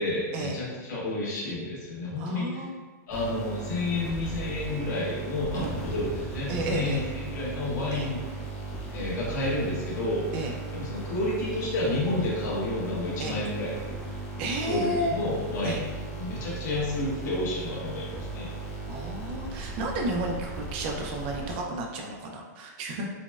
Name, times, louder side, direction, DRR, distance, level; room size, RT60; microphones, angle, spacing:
voice 1, 0.0-2.6 3.1-8.2 8.9-10.4 10.7-13.7 14.6-15.8 16.1-18.5, left 2 dB, 75° left, -6 dB, 1.2 m, -30 dB
voice 2, 2.2-2.7 5.5-5.7 6.5-7.0 7.9-8.1 10.3-10.5 13.2-13.4 14.4-15.2 15.6-15.8 18.9-23.1, right 1 dB, 35° right, 0 dB, 0.4 m, -32 dB
sound 1, 3.1-21.9, right 3 dB, 10° left, 0.7 m, -37 dB
4.0 x 2.1 x 2.3 m, 1.3 s
supercardioid pair, 165°, 10 cm